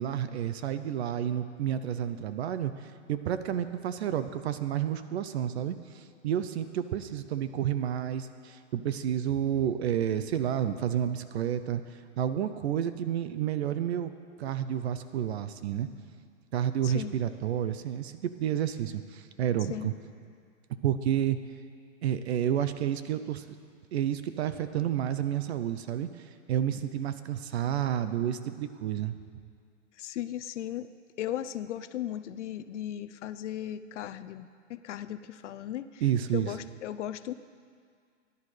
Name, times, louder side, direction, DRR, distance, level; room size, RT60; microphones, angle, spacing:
voice 1, 0.0-14.1 14.4-15.9 16.5-19.9 20.8-21.4 22.0-23.6 23.9-29.1 36.0-36.5, right 10 dB, 60° right, 12 dB, 0.6 m, -30 dB
voice 2, 16.8-17.2 19.7-19.9 30.0-30.9 31.2-36.0 36.3-37.3, left 11 dB, 70° left, 12 dB, 0.6 m, -36 dB
18.5 x 11.0 x 3.3 m, 2.1 s
hypercardioid pair, 145°, 37 cm